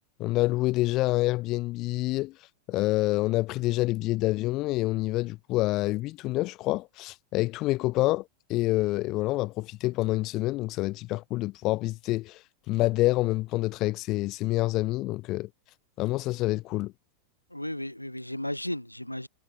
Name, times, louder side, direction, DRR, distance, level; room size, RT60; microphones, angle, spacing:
voice 1, 0.2-8.2 8.5-15.5 16.0-16.9, left 19 dB, 40° left, 1.0 m, -27 dB
voice 2, 17.5-19.3, left 1 dB, 90° left, 6.8 m, -34 dB
figure-of-eight pair, 90°, 0 cm